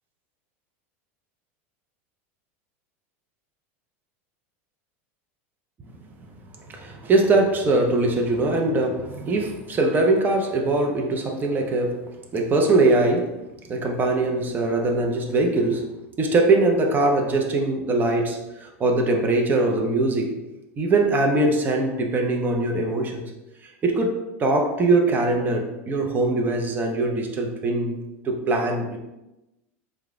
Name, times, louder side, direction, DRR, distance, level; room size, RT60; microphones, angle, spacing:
voice 1, 6.7-12.0 12.3-13.4 13.7-15.9 16.2-20.4 20.8-23.2 23.6-28.0 28.2-29.0, right 2 dB, 25° right, 2 dB, 0.7 m, -22 dB
4.7 x 2.3 x 3.6 m, 0.98 s
supercardioid pair, 110°, 7 cm